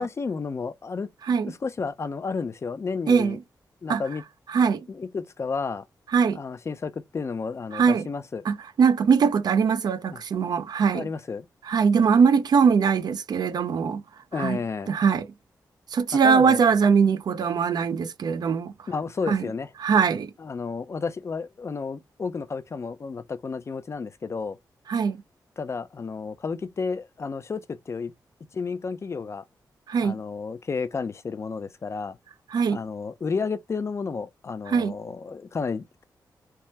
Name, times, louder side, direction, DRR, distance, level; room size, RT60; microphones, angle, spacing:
voice 1, 0.0-1.1 1.4-3.4 3.8-4.2 4.9-5.9 6.4-8.4 10.1-10.2 10.9-11.5 14.3-14.9 16.2-16.6 18.9-19.7 20.4-24.6 25.6-28.1 28.5-29.4 30.0-32.2 32.7-36.0, left 5 dB, 40° left, 0.4 m, -31 dB
voice 2, 3.1-3.4 3.9-4.0 4.5-4.9 6.1-6.4 7.7-8.1 8.5-11.1 11.6-14.0 14.4-14.6 14.9-15.3 15.9-18.7 19.3-19.4 19.8-20.3 24.9-25.2 29.9-30.2 32.5-32.8 34.7-34.9, right 6 dB, 65° right, 0.5 m, -21 dB
3.4 x 2.0 x 2.7 m
cardioid pair, 95°, 7 cm